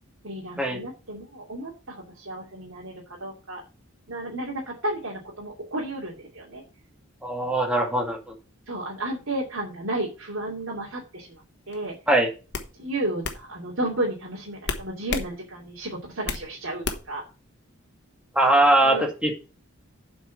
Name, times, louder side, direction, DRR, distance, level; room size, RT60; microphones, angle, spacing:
voice 1, 0.2-3.6 4.1-6.6 7.4-7.7 8.7-12.0 12.8-17.2 18.8-19.1, right 1 dB, 70° right, -4 dB, 2.7 m, -33 dB
voice 2, 7.2-8.2 12.1-12.3 18.4-19.3, right 1 dB, 5° right, 1 dB, 2.0 m, -21 dB
sound 1, 11.7-11.9 12.5-12.7 13.2-13.4 14.6-15.3 15.7-16.5 16.8-17.2, left 4 dB, 55° left, 1.2 m, -30 dB
7.8 x 5.3 x 7.1 m, 0.33 s
head